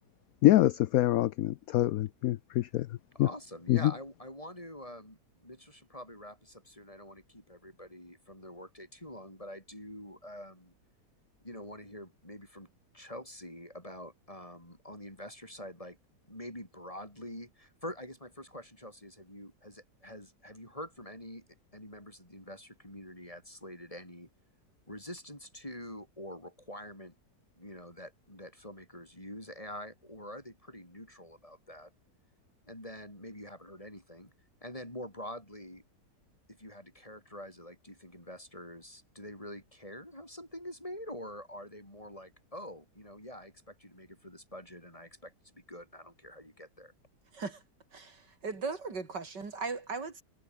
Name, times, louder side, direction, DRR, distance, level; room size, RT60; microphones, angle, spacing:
voice 1, 0.4-2.9 3.2-3.3 3.7-3.9, left 15 dB, 70° left, 0.9 m, -25 dB
voice 2, 3.1-10.7 11.4-12.7 12.9-16.0 16.3-21.5 21.7-24.3 24.9-27.1 27.6-31.9 32.7-34.3 34.6-35.8 36.5-46.9, left 1 dB, 20° left, 8.0 m, -46 dB
voice 3, 47.9-50.2, right 4 dB, 80° right, 3.8 m, -38 dB
omnidirectional pair, 1.8 m